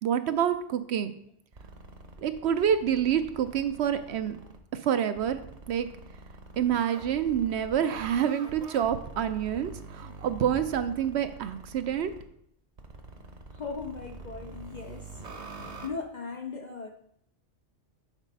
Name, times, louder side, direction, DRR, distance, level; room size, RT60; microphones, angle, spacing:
voice 1, 0.0-1.1 2.2-4.4 4.7-5.4 5.7-5.9 6.6-12.1, right 9 dB, 70° right, 10 dB, 0.8 m, -27 dB
sound 1, 1.5-4.6 5.2-12.2 12.8-15.9, right 3 dB, 40° right, 0.9 m, -45 dB
voice 2, 13.5-15.2 15.5-16.9, left 4 dB, 55° left, 4 dB, 0.5 m, -38 dB
7.2 x 4.1 x 5.3 m, 0.68 s
omnidirectional pair, 1.2 m